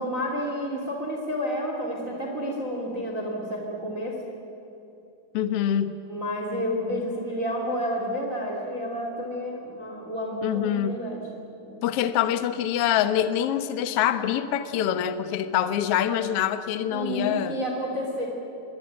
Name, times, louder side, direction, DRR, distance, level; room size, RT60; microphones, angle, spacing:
voice 1, 0.0-4.2 6.0-11.2 11.6-11.8 16.9-18.3, equal, 25° right, 0 dB, 2.8 m, -30 dB
voice 2, 5.3-5.9 10.4-11.0 11.8-17.6, left 10 dB, 85° left, 10 dB, 1.3 m, -25 dB
26.0 x 21.5 x 8.8 m, 3.0 s
omnidirectional pair, 4.4 m